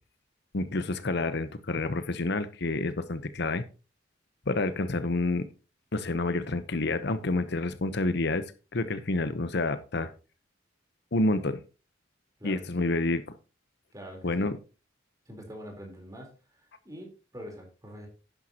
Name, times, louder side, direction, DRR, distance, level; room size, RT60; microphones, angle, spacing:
voice 1, 0.5-3.6 4.5-5.5 5.9-10.1 11.1-11.6 12.4-13.3 14.2-14.6, left 2 dB, 60° left, 12 dB, 0.9 m, -29 dB
voice 2, 12.4-12.9 13.9-14.5 15.3-18.1, equal, 20° right, 2 dB, 3.8 m, -45 dB
11.5 x 10.5 x 2.9 m, 0.31 s
head